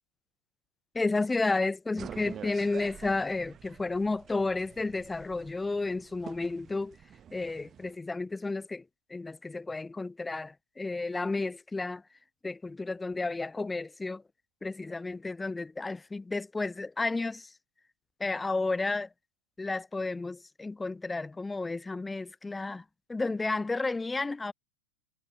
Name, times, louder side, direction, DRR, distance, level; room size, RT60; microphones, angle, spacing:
voice 1, 0.9-7.0 7.3-8.8 9.1-12.0 12.4-14.2 14.6-17.5 18.2-19.1 19.6-22.8 23.1-24.5, left 3 dB, 10° left, 0.5 m, -32 dB
sound 1, 2.0-7.9, right 9 dB, 25° right, 1.1 m, -48 dB
figure-of-eight pair, 90°, 0 cm